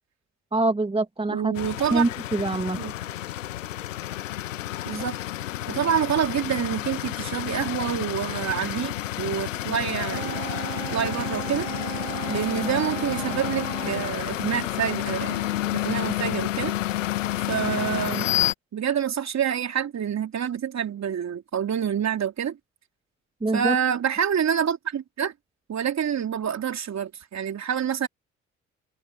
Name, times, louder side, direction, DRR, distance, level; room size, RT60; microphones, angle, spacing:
voice 1, 0.5-1.5 1.9-2.8 23.4-23.8, right 2 dB, 15° right, 2.0 m, -24 dB
voice 2, 1.3-2.1 2.7-2.9 4.8-5.2 5.7-10.4 10.9-11.7 12.3-15.5 15.7-16.7 17.5-18.4 18.7-22.6 23.5-25.3 25.7-28.1, right 8 dB, 45° right, 3.3 m, -27 dB
sound 1, 1.6-18.5, left 14 dB, 85° left, 1.3 m, -30 dB
sound 2, 10.0-14.1, right 18 dB, 80° right, 3.3 m, -36 dB
hypercardioid pair, 50°, 37 cm